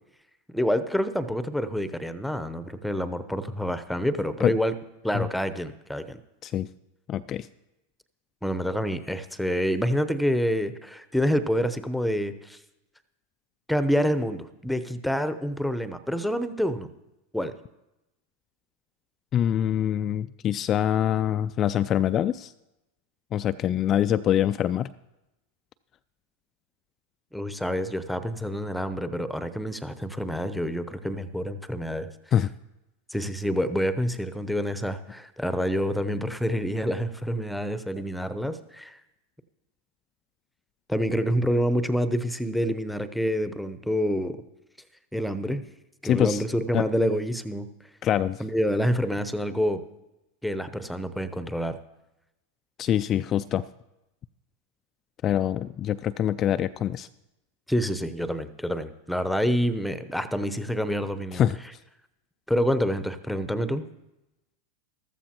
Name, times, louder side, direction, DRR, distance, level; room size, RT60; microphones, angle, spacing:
voice 1, 0.5-4.7 5.0-6.2 8.4-12.6 13.7-16.9 17.3-17.5 27.3-32.1 33.1-39.0 40.9-44.4 45.1-45.6 46.0-47.7 48.4-49.8 50.4-51.8 57.7-61.4 62.5-63.8, equal, ahead, 12 dB, 0.8 m, -27 dB
voice 2, 7.1-7.5 19.3-22.5 23.3-24.9 32.3-32.5 46.0-46.4 46.7-46.9 48.0-48.4 52.8-53.6 55.2-57.1 61.3-61.6, left 10 dB, 35° left, 12 dB, 0.3 m, -24 dB
14.5 x 13.5 x 2.9 m, 0.94 s
hypercardioid pair, 100°, 0 cm